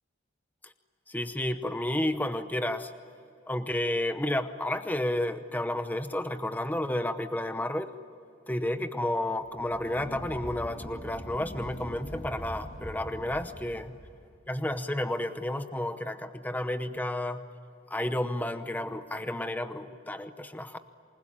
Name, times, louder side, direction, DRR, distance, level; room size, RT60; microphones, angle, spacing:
voice 1, 1.1-2.9 3.5-7.9 8.5-13.8 14.5-17.5 17.9-20.8, left 1 dB, 10° left, 9 dB, 0.8 m, -31 dB
sound 1, 9.4-14.3, equal, 35° left, 2.3 m, -43 dB
27.5 x 20.5 x 9.9 m, 2.5 s
head